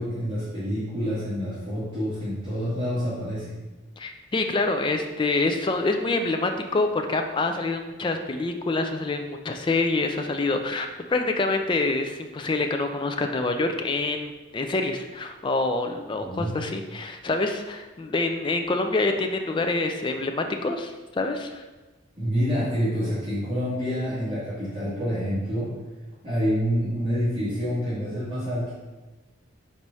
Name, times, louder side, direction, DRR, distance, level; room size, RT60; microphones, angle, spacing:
voice 1, 0.0-3.6 16.2-16.5 22.2-25.7 26.2-28.7, equal, 25° right, -12 dB, 2.1 m, -27 dB
voice 2, 4.0-21.6, left 3 dB, 25° left, 5 dB, 0.3 m, -26 dB
4.7 x 4.3 x 5.3 m, 1.2 s
head